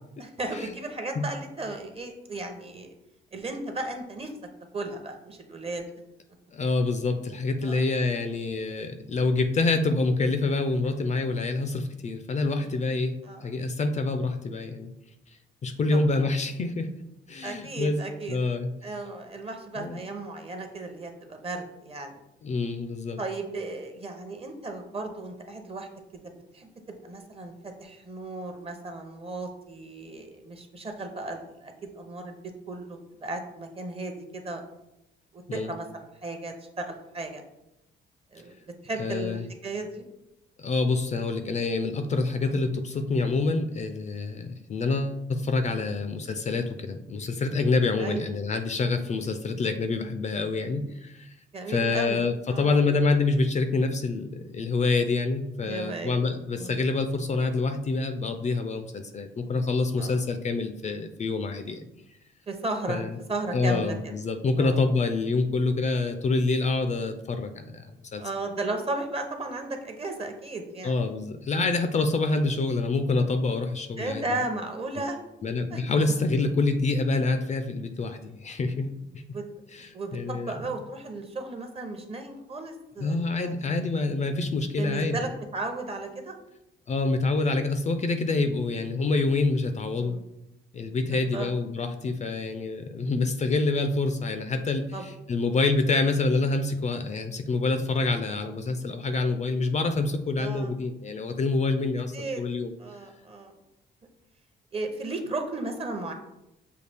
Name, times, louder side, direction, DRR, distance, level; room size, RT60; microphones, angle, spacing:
voice 1, 0.2-2.9 3.3-4.3 4.7-5.8 7.6-7.8 13.2-13.5 15.9-16.3 17.4-18.4 18.8-22.2 23.2-25.9 26.5-26.7 27.0-32.3 32.7-34.6 35.3-37.4 38.3-38.5 38.8-40.0 42.4-42.6 45.7-45.9 48.0-48.3 51.5-52.2 52.5-52.8 55.6-56.2 56.5-56.8 60.0-60.2 62.5-63.0 63.3-64.1 64.6-64.8 68.2-70.9 74.0-75.2 75.7-75.8 79.3-79.4 79.9-83.8 84.8-86.3 89.9-90.2 91.1-91.5 94.9-95.0 100.4-100.7 102.1-102.4 102.8-103.5 104.7-106.1, right 2 dB, 30° right, 4 dB, 0.7 m, -35 dB
voice 2, 6.5-13.2 13.4-14.9 15.6-16.9 17.3-18.0 18.3-18.7 19.7-20.0 22.4-23.2 35.5-35.7 39.0-39.4 40.6-51.3 51.7-61.9 62.9-63.1 63.5-68.2 70.8-74.4 75.0-75.1 75.4-79.2 79.7-80.5 83.0-85.3 86.9-90.2 90.7-102.7, left 3 dB, 35° left, 7 dB, 0.4 m, -27 dB
6.6 x 2.4 x 3.4 m, 0.87 s
cardioid pair, 90°, 20 cm